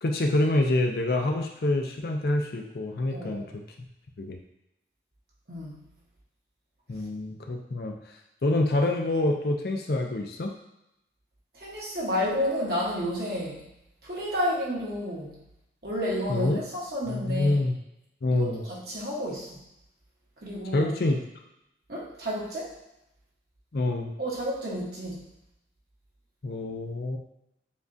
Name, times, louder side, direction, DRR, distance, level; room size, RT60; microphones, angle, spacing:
voice 1, 0.0-3.6 4.2-4.4 6.9-8.0 8.4-10.5 16.3-16.6 17.1-17.7 18.2-18.6 20.7-21.2 23.7-24.1 26.4-27.2, left 2 dB, 60° left, 3 dB, 0.5 m, -26 dB
voice 2, 3.1-3.4 5.5-5.8 11.5-13.7 14.0-15.4 15.8-17.6 18.3-19.6 20.4-20.9 21.9-22.7 24.2-25.3, equal, 60° right, -5 dB, 1.2 m, -31 dB
7.0 x 2.4 x 2.7 m, 0.86 s
head